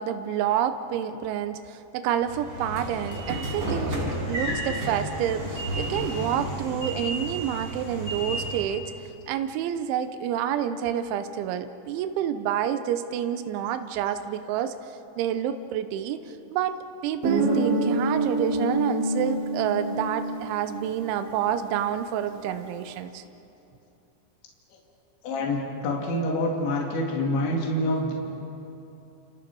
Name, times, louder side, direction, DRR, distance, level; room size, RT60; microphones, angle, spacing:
voice 1, 0.0-8.8 9.3-14.7 15.2-16.7 17.0-23.2, right 10 dB, 85° right, 9 dB, 3.2 m, -28 dB
Train / Sliding door, 2.2-8.7, right 1 dB, 30° right, 5.9 m, -31 dB
Guitar, 17.2-21.8, right 2 dB, 50° right, 4.1 m, -27 dB
voice 2, 25.2-28.1, left 1 dB, 75° left, -1 dB, 4.7 m, -26 dB
29.0 x 29.0 x 4.7 m, 2.8 s
omnidirectional pair, 5.3 m